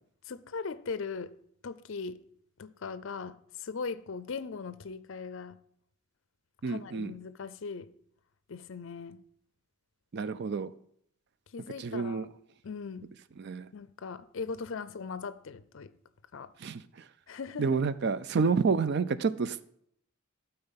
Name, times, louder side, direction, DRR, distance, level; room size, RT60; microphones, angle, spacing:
voice 1, 0.2-1.4 1.6-2.2 2.6-5.6 6.7-7.9 8.5-9.2 11.5-12.3 12.6-13.1 13.7-15.9 16.3-16.5 17.3-17.8, left 5 dB, 60° left, 0.5 m, -39 dB
voice 2, 6.6-7.1 10.1-10.7 11.8-12.3 13.4-13.7 16.6-17.0 17.6-19.6, right 5 dB, 50° right, 0.4 m, -29 dB
12.5 x 4.4 x 5.7 m
head